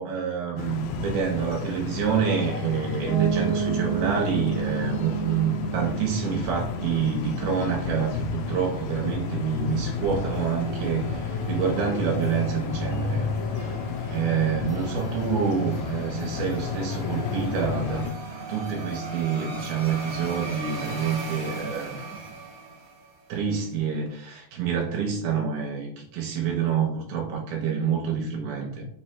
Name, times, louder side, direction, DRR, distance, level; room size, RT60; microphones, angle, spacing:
voice 1, 0.0-13.3 13.6-13.8 14.1-18.1 18.5-22.2 23.3-28.9, right 7 dB, 85° right, 0 dB, 2.3 m, -27 dB
sound 1, 0.6-18.1, left 5 dB, 90° left, 1.5 m, -32 dB
Piano, 3.1-8.8, right 8 dB, 45° left, 1.5 m, -32 dB
sound 2, 8.7-23.3, right 2 dB, 35° right, 0.9 m, -38 dB
5.3 x 2.2 x 4.3 m, 0.64 s
omnidirectional pair, 3.6 m